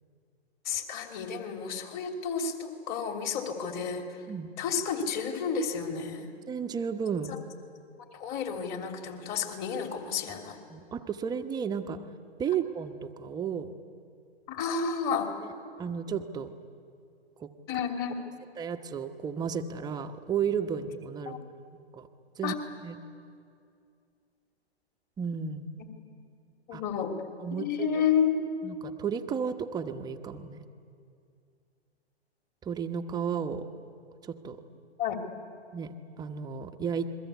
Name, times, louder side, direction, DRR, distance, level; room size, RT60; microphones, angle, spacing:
voice 1, 0.6-4.2 4.6-6.3 7.3-7.4 8.1-10.6 14.5-15.3 17.7-18.1 21.3-21.4 22.4-22.5 25.8-25.9 26.7-27.2 27.5-28.3 35.0-35.2, left 6 dB, 25° left, 4 dB, 2.9 m, -31 dB
voice 2, 6.5-7.3 10.7-12.0 12.4-13.7 15.8-16.5 17.4-17.5 18.6-21.4 21.7-22.1 22.4-22.5 22.8-23.0 25.2-25.8 26.7-26.8 27.4-27.7 28.6-30.6 32.6-33.7 34.2-34.6 35.7-37.2, right 7 dB, 10° right, 7 dB, 1.0 m, -33 dB
28.5 x 22.0 x 8.3 m, 2.4 s
hypercardioid pair, 130°, 33 cm